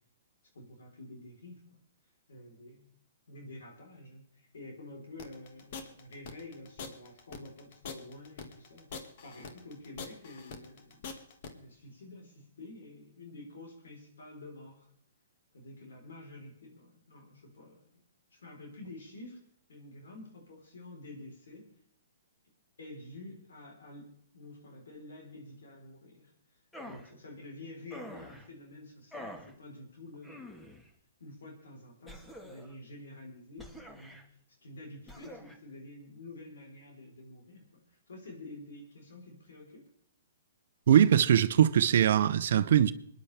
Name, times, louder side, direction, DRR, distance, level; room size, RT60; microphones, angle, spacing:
voice 1, 0.5-1.8 2.3-2.8 3.3-11.1 11.5-14.9 15.5-17.9 18.3-21.6 22.8-30.7 31.2-39.8, left 2 dB, 80° left, 3.8 m, -49 dB
sound 1, 5.2-11.5, left 5 dB, 50° left, 1.8 m, -43 dB
sound 2, 26.7-27.1 27.9-28.5 29.1-29.5 30.2-30.9 32.1-32.8 33.6-34.2 35.1-35.6, equal, 5° left, 1.5 m, -46 dB
voice 2, 40.9-42.9, right 9 dB, 65° right, 0.7 m, -22 dB
25.0 x 10.5 x 3.4 m
hypercardioid pair, 135°, 0 cm